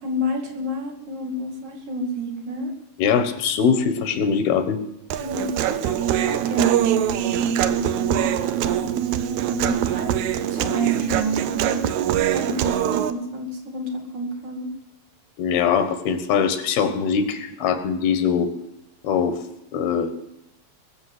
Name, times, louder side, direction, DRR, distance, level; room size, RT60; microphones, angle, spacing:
voice 1, 0.0-2.7 5.2-8.3 8.6-11.8 12.3-14.7, right 2 dB, 60° right, 1 dB, 3.6 m, -29 dB
voice 2, 3.0-4.8 15.4-18.5 19.0-19.4 19.7-20.1, left 6 dB, 85° left, 9 dB, 3.3 m, -22 dB
Human voice, 5.1-13.1, right 10 dB, 75° right, 1.7 m, -23 dB
20.5 x 7.4 x 7.9 m, 0.88 s
omnidirectional pair, 4.3 m